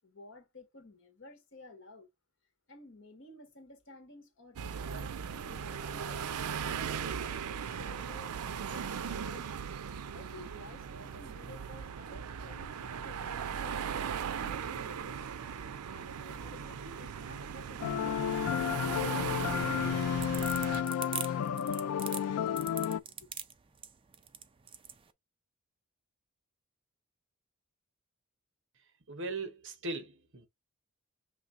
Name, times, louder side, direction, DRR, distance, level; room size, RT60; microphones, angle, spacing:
voice 1, 0.0-2.1 2.7-6.2 6.6-9.6 10.1-13.9 14.3-15.2 15.9-18.2 18.5-20.5 21.1-22.3 23.2-23.3, left 2 dB, 60° left, 1.6 m, -53 dB
sound 1, 4.6-20.8, right 7 dB, 85° right, 0.4 m, -38 dB
sound 2, 17.8-23.0, left 8 dB, 80° left, 0.3 m, -32 dB
sound 3, 20.0-25.0, right 8 dB, 25° right, 0.4 m, -41 dB
voice 2, 29.1-30.5, right 2 dB, 60° right, 0.9 m, -39 dB
5.9 x 3.2 x 2.5 m
head